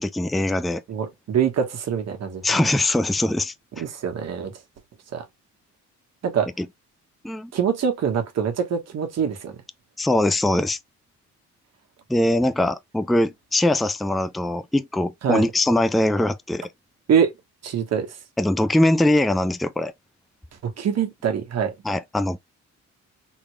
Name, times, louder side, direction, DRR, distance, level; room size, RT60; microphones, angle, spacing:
voice 1, 0.0-0.8 2.4-3.8 6.6-6.7 7.2-7.5 10.0-10.8 12.1-16.7 18.4-19.9 21.8-22.4, left 1 dB, ahead, 0.3 m, -22 dB
voice 2, 0.9-2.4 3.8-4.5 5.1-5.2 6.2-6.5 7.5-9.5 15.2-15.5 17.1-17.3 17.6-18.1 20.6-21.7, right 7 dB, 60° right, 1.3 m, -24 dB
3.8 x 3.1 x 2.2 m
cardioid pair, 90°, 30 cm